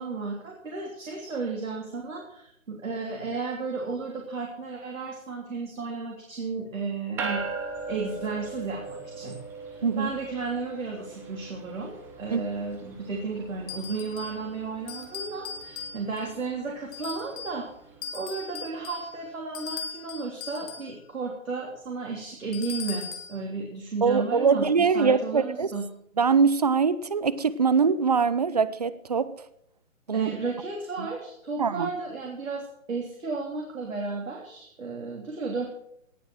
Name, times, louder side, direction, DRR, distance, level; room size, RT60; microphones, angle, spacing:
voice 1, 0.0-7.4 7.9-9.4 9.7-17.7 18.1-25.9 30.1-35.7, right 4 dB, 75° right, 3.4 m, -33 dB
sound 1, 7.2-18.8, right 4 dB, 5° right, 0.8 m, -40 dB
sound 2, 13.7-14.4 14.9-16.3 16.9-17.6 18.0-21.0 22.5-23.4, left 6 dB, 30° left, 2.1 m, -39 dB
voice 2, 24.0-25.7 26.2-29.3 30.1-30.3 31.6-31.9, right 5 dB, 30° right, 0.5 m, -23 dB
18.5 x 7.1 x 6.2 m
hypercardioid pair, 150°, 40 cm